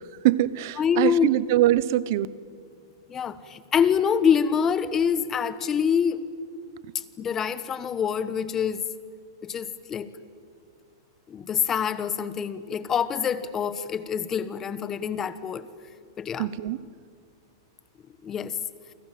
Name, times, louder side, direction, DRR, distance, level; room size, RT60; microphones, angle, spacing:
voice 1, 0.2-2.3 16.4-16.8, right 15 dB, 50° right, 19 dB, 0.9 m, -23 dB
voice 2, 0.8-1.4 3.1-6.2 6.9-8.9 9.4-10.1 11.3-15.7 16.2-16.5 18.2-18.6, left 7 dB, 20° left, 14 dB, 1.2 m, -26 dB
29.5 x 24.5 x 7.7 m, 2.1 s
supercardioid pair, 160°, 2 cm